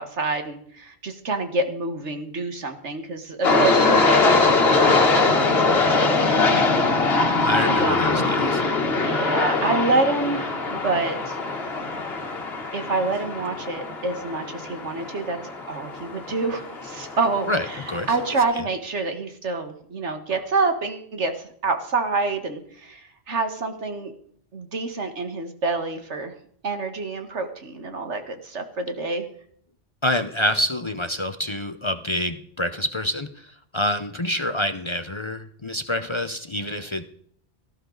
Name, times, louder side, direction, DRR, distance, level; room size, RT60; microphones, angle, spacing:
voice 1, 0.0-5.8 6.1-6.4 7.3-8.0 8.4-8.5 8.9-11.4 12.7-15.4 15.7-24.1 24.5-26.3 26.6-29.3, right 3 dB, 80° right, 6 dB, 2.0 m, -27 dB
sound 1, 3.4-18.4, left 3 dB, 60° left, 1.9 m, -22 dB
voice 2, 7.5-8.6 17.5-18.1 18.6-18.7 30.0-37.0, left 1 dB, 30° left, 9 dB, 0.7 m, -27 dB
17.5 x 13.5 x 4.0 m, 0.63 s
omnidirectional pair, 1.2 m